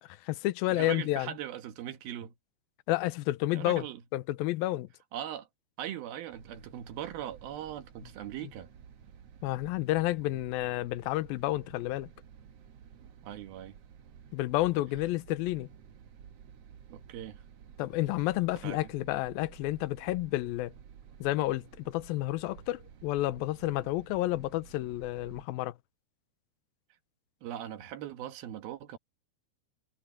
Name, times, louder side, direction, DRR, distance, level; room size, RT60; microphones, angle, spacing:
voice 1, 0.0-1.3 2.9-3.8 4.1-4.9 9.4-12.1 14.3-15.7 17.8-20.7 21.2-25.7, left 17 dB, 80° left, 2.4 m, -30 dB
voice 2, 0.7-2.3 3.5-4.0 5.1-5.5 5.8-8.7 13.2-13.8 16.9-17.4 18.6-18.9 27.4-29.0, right 11 dB, 70° right, 3.1 m, -40 dB
sound 1, 6.3-25.4, right 8 dB, 90° right, 1.4 m, -53 dB
omnidirectional pair, 4.7 m